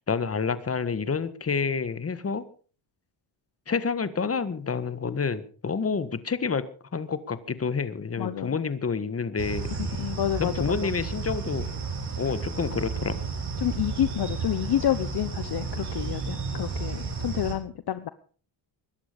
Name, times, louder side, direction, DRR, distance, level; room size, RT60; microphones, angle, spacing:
voice 1, 0.1-2.4 3.7-6.7 6.9-9.7 10.4-11.7 12.2-13.2, left 5 dB, 30° left, 14 dB, 1.6 m, -28 dB
voice 2, 8.2-8.5 9.9-10.9 13.6-18.1, left 11 dB, 50° left, 14 dB, 0.9 m, -29 dB
sound 1, 9.4-17.5, right 4 dB, 55° right, 7.9 m, -32 dB
21.5 x 11.5 x 5.2 m, 0.42 s
cardioid pair, 100°, 50 cm